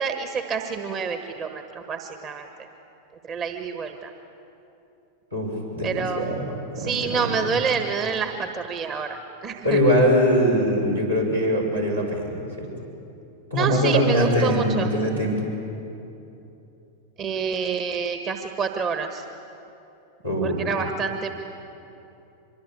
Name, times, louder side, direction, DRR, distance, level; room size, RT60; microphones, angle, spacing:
voice 1, 0.0-2.5 3.3-4.1 5.8-6.2 6.8-9.8 13.5-14.9 17.2-19.2 20.4-21.3, right 5 dB, 30° right, 6 dB, 1.4 m, -28 dB
voice 2, 5.3-7.3 9.6-12.7 13.5-15.4 20.2-20.7, equal, 85° right, -3 dB, 6.3 m, -22 dB
24.5 x 22.5 x 8.5 m, 2.9 s
figure-of-eight pair, 90°, 0 cm